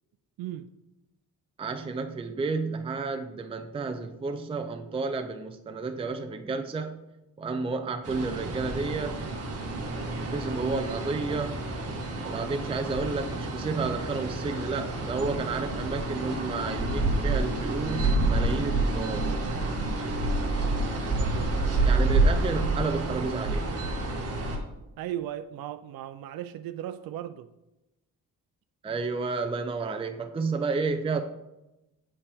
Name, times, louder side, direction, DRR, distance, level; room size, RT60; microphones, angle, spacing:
voice 1, 0.4-0.7 20.9-21.6 25.0-27.5, right 11 dB, 80° right, 0.5 m, -37 dB
voice 2, 1.6-7.0 7.4-9.2 10.2-11.6 12.2-19.3 21.8-23.7 28.8-31.2, right 4 dB, 15° right, 0.5 m, -31 dB
sound 1, 8.0-24.6, right 2 dB, 45° right, 1.7 m, -28 dB
8.5 x 8.2 x 3.5 m
cardioid pair, 145°, 35 cm